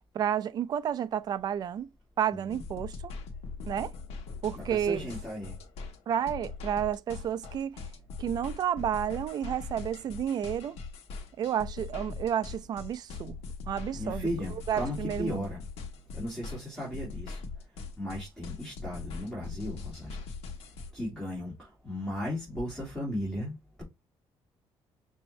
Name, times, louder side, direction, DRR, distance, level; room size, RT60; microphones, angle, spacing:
voice 1, 0.1-1.9 2.2-3.1 3.7-3.9 4.4-5.1 6.1-7.8 8.2-10.8 11.4-13.4 13.7-14.3 14.7-15.5, right 9 dB, 40° right, 0.4 m, -31 dB
sound 1, 2.5-20.9, left 4 dB, 85° left, 1.0 m, -41 dB
voice 2, 4.5-5.6 14.0-15.6 16.1-17.4 18.0-20.2 20.9-23.8, left 1 dB, 5° left, 2.5 m, -36 dB
5.6 x 2.6 x 3.1 m
cardioid pair, 170°, 10 cm